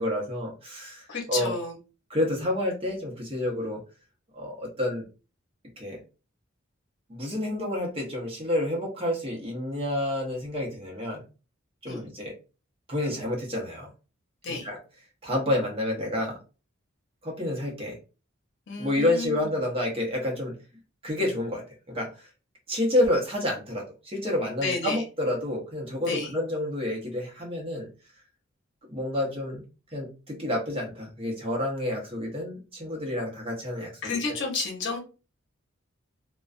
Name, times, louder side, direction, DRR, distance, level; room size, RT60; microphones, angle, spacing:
voice 1, 0.0-1.6 2.1-3.8 4.3-5.0 5.8-6.0 7.1-11.2 11.8-12.3 12.9-13.9 14.6-14.8 15.2-16.4 17.2-18.0 18.8-20.5 21.0-22.3 22.7-27.9 28.9-29.6 29.9-33.9, left 1 dB, 30° right, -1 dB, 0.8 m, -29 dB
voice 2, 1.1-1.8 11.9-12.0 14.4-14.7 18.7-19.5 24.6-25.0 26.1-26.3 34.0-35.0, left 4 dB, 60° left, 0 dB, 0.8 m, -31 dB
2.4 x 2.2 x 2.4 m, 0.32 s
head